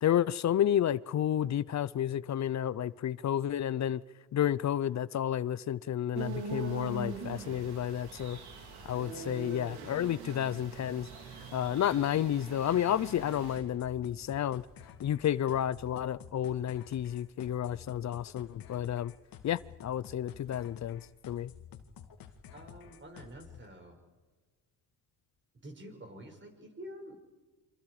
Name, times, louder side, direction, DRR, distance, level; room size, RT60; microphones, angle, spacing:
voice 1, 0.0-4.0 4.3-8.4 8.8-11.1 11.5-14.6 15.0-19.1 19.4-21.5, left 10 dB, 45° left, 18 dB, 0.7 m, -31 dB
sound 1, 6.1-13.6, right 5 dB, 75° right, 4.4 m, -42 dB
sound 2, 13.2-23.7, left 8 dB, 60° left, 2.2 m, -52 dB
voice 2, 22.5-24.0 25.6-27.1, equal, 30° right, 4 dB, 6.2 m, -48 dB
27.5 x 26.0 x 5.0 m, 1.3 s
cardioid pair, 95°, 39 cm